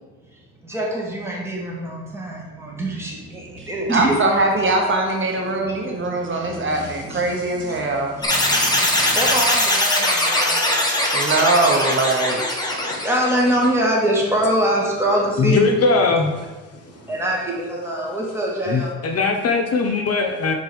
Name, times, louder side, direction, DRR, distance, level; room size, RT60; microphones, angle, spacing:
voice 1, 0.3-4.5 5.5-10.9 11.2-11.5 12.8-16.2 16.7-19.0, right 1 dB, 10° right, -3 dB, 2.3 m, -25 dB
voice 2, 3.6-8.2 11.1-12.4, right 2 dB, 40° right, 1 dB, 1.3 m, -21 dB
sound 1, 8.2-13.7, left 1 dB, 15° left, 1.6 m, -21 dB
voice 3, 12.7-13.0 15.4-16.3 18.7-20.5, left 4 dB, 55° left, 4 dB, 1.0 m, -20 dB
5.4 x 4.5 x 6.1 m, 1.2 s
cardioid pair, 90°, 30 cm